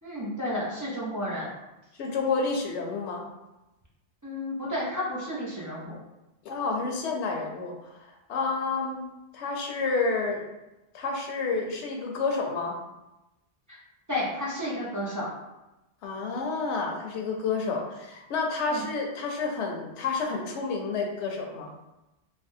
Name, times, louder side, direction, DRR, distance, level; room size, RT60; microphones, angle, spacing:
voice 1, 0.0-1.5 4.2-6.0 13.7-13.8 14.1-15.3 18.7-18.9, left 1 dB, 25° right, -8 dB, 0.5 m, -32 dB
voice 2, 2.0-3.3 6.4-7.7 8.0-9.0 9.3-10.5 10.9-12.7 16.0-21.7, left 4 dB, 90° left, 1 dB, 0.9 m, -29 dB
3.3 x 2.1 x 2.6 m, 0.99 s
omnidirectional pair, 1.1 m